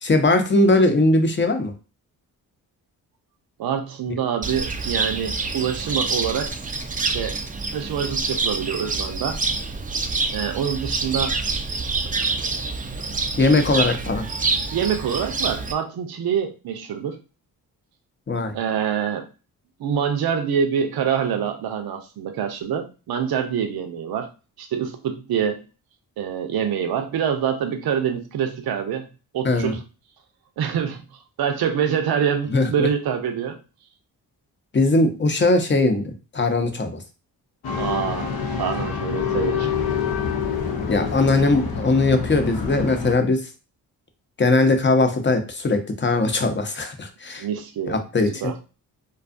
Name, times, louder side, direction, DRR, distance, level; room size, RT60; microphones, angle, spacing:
voice 1, 0.0-1.7 13.4-14.3 18.3-18.5 29.4-29.8 32.5-32.9 34.7-37.0 40.9-43.4 44.4-47.5 47.8-48.5, left 2 dB, 30° left, 6 dB, 0.7 m, -20 dB
voice 2, 3.6-6.5 7.0-7.4 7.7-9.4 10.3-11.4 14.7-17.2 18.5-19.3 19.8-24.3 24.6-25.6 26.2-29.1 29.3-29.8 30.6-31.0 31.4-33.6 37.8-39.7 47.4-48.0 48.4-48.6, right 8 dB, 65° right, 5 dB, 0.6 m, -25 dB
Cricket, 4.4-15.7, right 3 dB, 20° right, 0.4 m, -27 dB
sound 1, 37.6-43.1, left 6 dB, 65° left, 0.7 m, -26 dB
2.5 x 2.3 x 2.5 m, 0.33 s
supercardioid pair, 50°, 40 cm